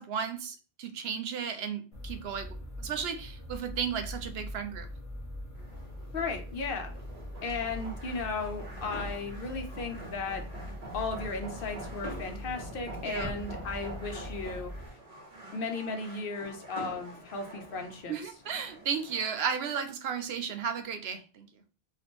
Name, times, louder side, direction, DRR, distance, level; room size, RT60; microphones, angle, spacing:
voice 1, 0.0-2.5 2.8-4.9 13.0-13.3 18.1-21.5, right 7 dB, 80° right, 8 dB, 0.9 m, -34 dB
sound 1, 1.9-14.9, left 1 dB, 35° left, 1.3 m, -42 dB
sound 2, 5.6-19.3, right 1 dB, 40° right, 1.1 m, -46 dB
voice 2, 6.1-6.9 7.4-10.4 10.9-14.7 15.5-18.2, left 4 dB, 65° left, 5 dB, 0.9 m, -35 dB
sound 3, 13.2-16.0, equal, 5° right, 0.8 m, -48 dB
4.3 x 2.6 x 2.9 m, 0.36 s
omnidirectional pair, 1.0 m